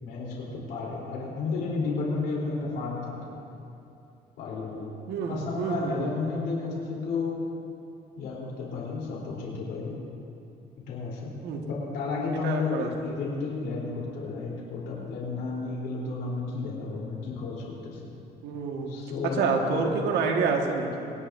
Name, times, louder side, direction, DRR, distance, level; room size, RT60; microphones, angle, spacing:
voice 1, 0.0-3.3 4.4-4.9 5.2-7.4 8.2-10.0 10.9-11.3 11.7-18.1 18.9-19.9, left 4 dB, 80° left, -4 dB, 3.5 m, -32 dB
voice 2, 5.1-6.1 11.4-11.6 12.4-12.9 18.4-18.9 19.2-21.1, right 5 dB, 80° right, 1 dB, 1.6 m, -28 dB
25.5 x 10.5 x 2.6 m, 2.7 s
cardioid pair, 110°, 17 cm